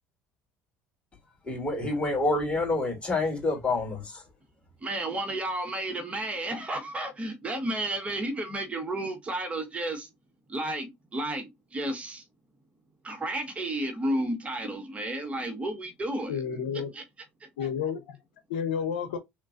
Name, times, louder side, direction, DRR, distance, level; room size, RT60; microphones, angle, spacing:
voice 1, 1.5-4.2, left 2 dB, 25° left, 2.6 m, -27 dB
voice 2, 4.8-10.1 10.5-12.2 13.0-16.4 16.7-17.0 17.4-17.5, right 1 dB, 25° right, 1.3 m, -32 dB
voice 3, 16.3-16.9 17.6-18.1 18.5-19.2, left 7 dB, 90° left, 0.7 m, -30 dB
3.7 x 2.9 x 2.4 m
supercardioid pair, 85°, 5 cm